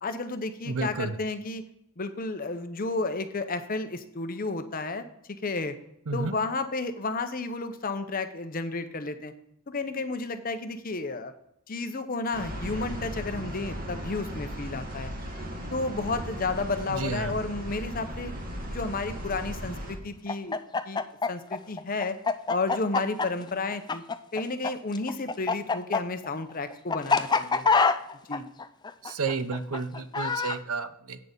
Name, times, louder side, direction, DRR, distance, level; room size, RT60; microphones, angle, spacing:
voice 1, 0.0-1.6 2.0-5.8 6.1-9.3 9.7-11.3 11.7-15.1 15.7-18.3 18.7-20.6 20.9-21.0 21.3-22.2 22.5-24.0 24.3-27.7 28.3-28.5, left 3 dB, 40° left, 9 dB, 0.8 m, -32 dB
voice 2, 0.7-1.2 6.1-6.4 16.9-17.3 29.0-31.2, right 4 dB, 75° right, 12 dB, 0.7 m, -31 dB
sound 1, 12.3-20.0, equal, 40° right, 1.8 m, -37 dB
Chicken rooster, 20.3-24.7 24.9-30.6, left 4 dB, 20° left, 0.3 m, -25 dB
8.5 x 6.5 x 5.2 m, 0.78 s
head